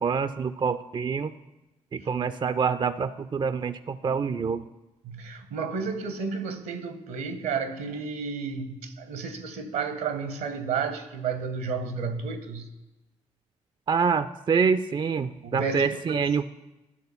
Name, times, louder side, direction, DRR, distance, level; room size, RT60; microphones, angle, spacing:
voice 1, 0.0-1.3 1.9-4.6 13.9-16.5, right 6 dB, 30° right, 0.4 m, -26 dB
voice 2, 5.0-12.7 15.4-16.3, right 5 dB, 70° right, 1.0 m, -32 dB
10.5 x 3.8 x 6.9 m
hypercardioid pair, 40°, 15 cm